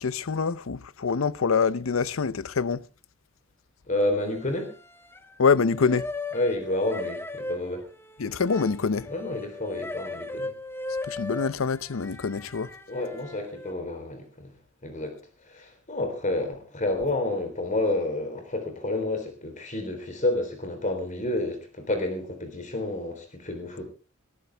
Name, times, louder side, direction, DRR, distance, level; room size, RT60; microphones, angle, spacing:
voice 1, 0.0-2.8 5.4-6.1 8.2-9.1 11.0-12.7, left 5 dB, 85° left, 0.6 m, -25 dB
voice 2, 3.9-4.7 6.3-7.9 9.1-10.5 12.9-14.5 14.8-15.2 15.5-23.8, left 2 dB, 40° left, 3.6 m, -29 dB
sound 1, 4.2-5.3 5.6-13.7, left 2 dB, 10° left, 1.2 m, -38 dB
20.0 x 13.5 x 3.4 m
head